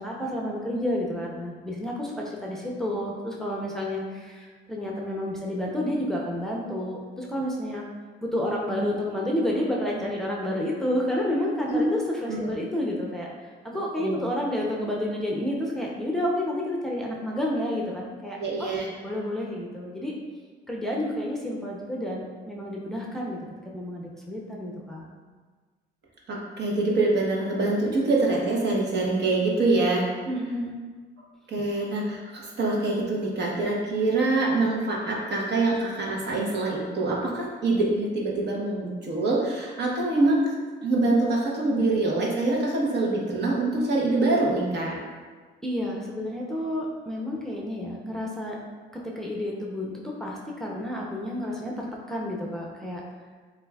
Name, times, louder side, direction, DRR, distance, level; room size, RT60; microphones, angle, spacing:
voice 1, 0.0-7.8 8.2-13.3 13.6-18.7 19.0-20.1 20.7-23.4 23.7-25.1 30.3-30.7 45.6-48.6 49.0-53.0, left 1 dB, ahead, -3 dB, 0.7 m, -30 dB
voice 2, 18.4-18.9 26.3-30.0 31.5-40.5 40.8-45.0, right 2 dB, 60° right, -3 dB, 1.1 m, -25 dB
7.5 x 2.6 x 2.3 m, 1.4 s
cardioid pair, 90°, 20 cm